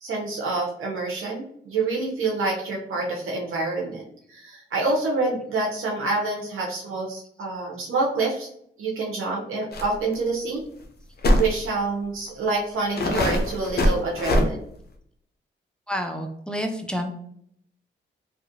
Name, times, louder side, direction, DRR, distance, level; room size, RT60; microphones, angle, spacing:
voice 1, 0.0-8.5 8.8-10.6 11.4-14.6, right 3 dB, 80° right, -1 dB, 0.6 m, -27 dB
sound 1, 9.7-9.9 10.1-10.2 11.2-11.5 12.3-12.4 13.0-14.5, left 1 dB, 50° left, 0.6 m, -21 dB
voice 2, 15.9-17.1, equal, 5° left, 4 dB, 0.5 m, -29 dB
2.8 x 2.4 x 2.6 m, 0.68 s
cardioid pair, 55°, 21 cm